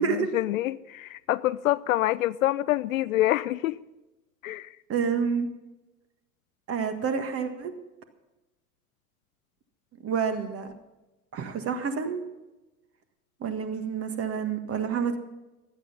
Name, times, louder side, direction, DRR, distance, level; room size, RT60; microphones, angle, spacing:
voice 1, 0.0-3.8 4.4-4.7, left 15 dB, 60° left, 18 dB, 0.5 m, -26 dB
voice 2, 4.9-5.5 6.7-7.7 10.0-10.7 11.3-12.2 13.4-15.2, right 6 dB, 30° right, 8 dB, 1.7 m, -28 dB
16.5 x 11.5 x 5.5 m, 1.0 s
figure-of-eight pair, 75°, 47 cm